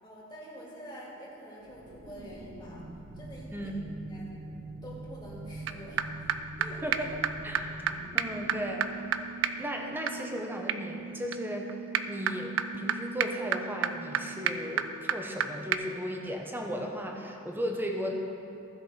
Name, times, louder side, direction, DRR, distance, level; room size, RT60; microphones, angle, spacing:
voice 1, 0.0-2.8 3.2-3.7 4.1-4.4 4.8-6.0 6.6-6.8 7.9-8.0, equal, 20° left, -6 dB, 2.3 m, -46 dB
sound 1, 1.6-9.9, right 2 dB, 55° right, 0.9 m, -44 dB
voice 2, 3.5-3.8 6.8-7.1 7.4-9.3 9.6-11.8 12.0-18.1, equal, 10° right, 1 dB, 0.8 m, -36 dB
sound 2, 5.7-5.8 6.0-6.1 6.3-6.4 6.6-6.7 6.9-7.0 7.2-7.3 7.5-7.6 7.9-8.0 8.2-15.4 15.7-15.8, right 8 dB, 70° right, 0.4 m, -32 dB
15.5 x 5.5 x 4.3 m, 2.8 s
head